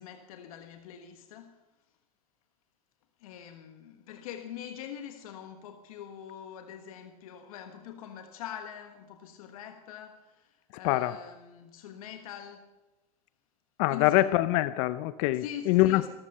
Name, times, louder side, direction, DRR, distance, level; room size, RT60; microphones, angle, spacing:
voice 1, 0.0-1.6 3.2-12.7 13.9-14.2 15.3-16.1, left 9 dB, 80° left, 1.4 m, -44 dB
voice 2, 10.8-11.2 13.8-16.1, left 16 dB, 60° left, 0.7 m, -24 dB
17.0 x 14.0 x 5.6 m
supercardioid pair, 115°, 18 cm